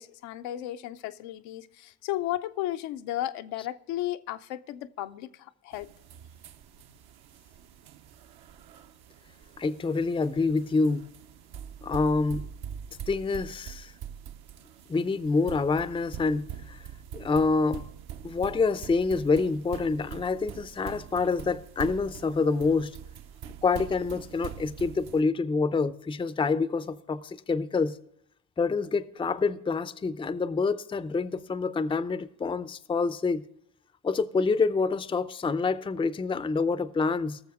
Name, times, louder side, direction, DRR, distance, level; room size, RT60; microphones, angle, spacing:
voice 1, 0.0-5.9, left 14 dB, 75° left, 0.7 m, -34 dB
sound 1, 5.7-25.2, right 9 dB, 55° right, 0.8 m, -44 dB
voice 2, 9.6-11.1 11.8-12.5 13.1-13.9 14.9-16.8 17.1-17.9 18.2-23.0 23.6-28.0 28.6-33.4 34.0-37.4, left 4 dB, 10° left, 0.5 m, -27 dB
18.5 x 6.9 x 3.6 m
hypercardioid pair, 60°, 46 cm